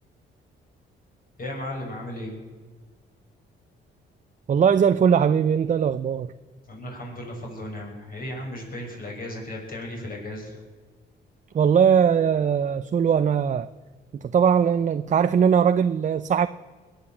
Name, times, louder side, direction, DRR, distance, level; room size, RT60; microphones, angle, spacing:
voice 1, 1.4-2.3 6.7-10.6, left 1 dB, 45° left, 6.5 m, -35 dB
voice 2, 4.5-6.3 11.5-13.7 14.1-16.5, right 7 dB, 40° right, 0.6 m, -20 dB
21.0 x 9.0 x 7.4 m
cardioid pair, 90°, 20 cm